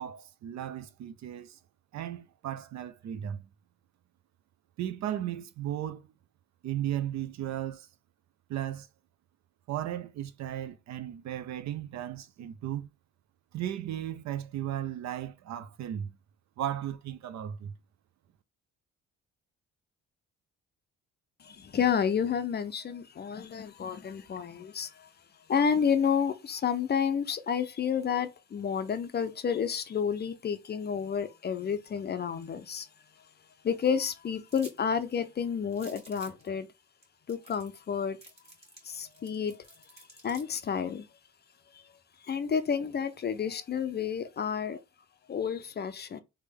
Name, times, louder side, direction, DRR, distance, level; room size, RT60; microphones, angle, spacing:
voice 1, 0.0-1.6 1.9-3.4 4.8-6.1 6.6-7.9 8.5-8.9 9.7-12.9 13.5-16.1 16.6-17.7, right 11 dB, 65° right, 0.5 m, -35 dB
voice 2, 21.4-25.1 25.5-32.9 33.6-36.7 37.3-38.2 38.8-39.6 40.2-41.1 42.3-44.8 45.3-46.2, left 7 dB, 35° left, 0.4 m, -30 dB
sound 1, 34.5-34.8 35.1-35.2 35.7-36.5 37.0-37.1 37.3-37.9 38.2-40.7, right 1 dB, 20° right, 1.6 m, -52 dB
3.3 x 2.2 x 3.3 m
cardioid pair, 90°, 30 cm